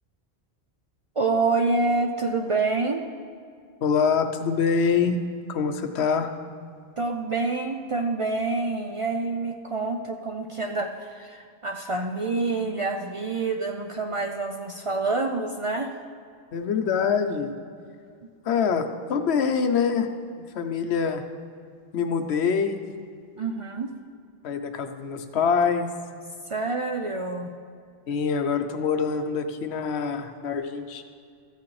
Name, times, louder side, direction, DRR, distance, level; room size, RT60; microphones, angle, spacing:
voice 1, 1.2-3.0 7.0-15.9 23.4-23.9 26.5-27.5, right 3 dB, 45° right, 3 dB, 0.4 m, -27 dB
voice 2, 3.8-5.2 5.5-6.3 16.5-17.5 18.4-20.1 20.5-21.2 21.9-22.8 24.4-25.9 28.1-31.0, left 6 dB, 85° left, 7 dB, 1.0 m, -25 dB
14.0 x 8.5 x 3.2 m, 2.3 s
omnidirectional pair, 1.1 m